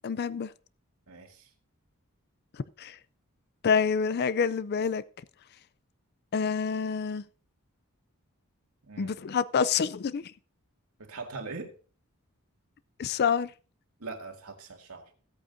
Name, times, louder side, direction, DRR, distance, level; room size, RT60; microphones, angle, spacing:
voice 1, 0.0-0.5 2.8-3.0 3.6-5.0 6.3-7.2 9.0-10.3 13.0-13.5, left 6 dB, 50° left, 0.4 m, -27 dB
voice 2, 1.1-1.5 8.9-9.1 11.0-11.7 14.0-15.1, right 3 dB, 80° right, 2.1 m, -41 dB
16.5 x 8.5 x 2.6 m
head